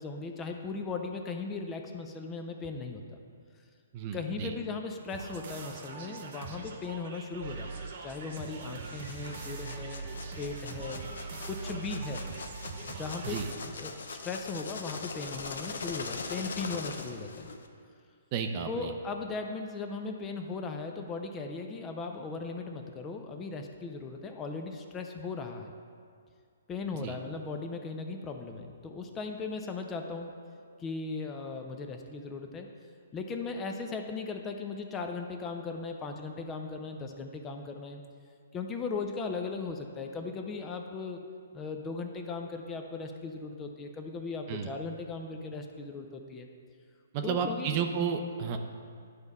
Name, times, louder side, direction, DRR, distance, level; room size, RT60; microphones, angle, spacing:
voice 1, 0.0-3.0 4.1-10.1 10.4-11.0 11.5-12.2 12.9-17.5 18.7-25.7 26.7-30.3 30.8-32.7 33.1-38.0 38.5-41.2 41.5-46.5 47.2-47.8, left 4 dB, 20° left, 4 dB, 0.5 m, -38 dB
voice 2, 3.9-4.5 13.2-13.5 18.3-18.9 27.0-27.1 44.5-44.7 47.1-48.6, right 6 dB, 35° right, 6 dB, 0.5 m, -32 dB
sound 1, 5.1-13.5, right 4 dB, 55° right, 1.0 m, -42 dB
sound 2, 8.9-17.7, left 4 dB, 75° left, 0.6 m, -41 dB
10.5 x 3.5 x 5.4 m, 2.2 s
hypercardioid pair, 140°, 0 cm